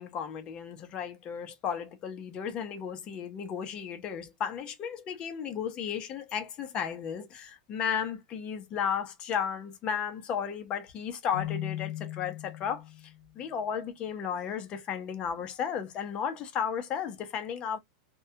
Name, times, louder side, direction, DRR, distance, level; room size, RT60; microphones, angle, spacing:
voice 1, 0.0-17.8, left 7 dB, 25° left, 0.5 m, -34 dB
Keyboard (musical), 11.3-13.2, left 14 dB, 75° left, 0.6 m, -37 dB
2.2 x 2.1 x 2.6 m
supercardioid pair, 165°, 4 cm